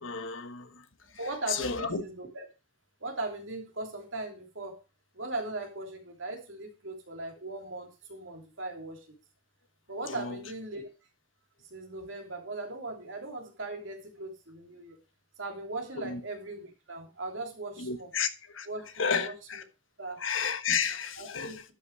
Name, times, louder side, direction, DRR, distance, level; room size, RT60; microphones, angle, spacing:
voice 1, 0.0-0.7 1.5-2.0 10.1-10.4 16.0-16.2 17.8-18.3 18.5-18.7 19.0-19.6 20.2-21.6, left 6 dB, 80° left, 1.3 m, -31 dB
voice 2, 1.2-2.5 3.0-4.8 5.1-9.0 9.9-10.8 11.7-15.0 15.4-18.1 18.7-19.3 20.0-20.2 21.2-21.6, right 2 dB, 75° right, 3.2 m, -39 dB
11.5 x 5.8 x 4.8 m
head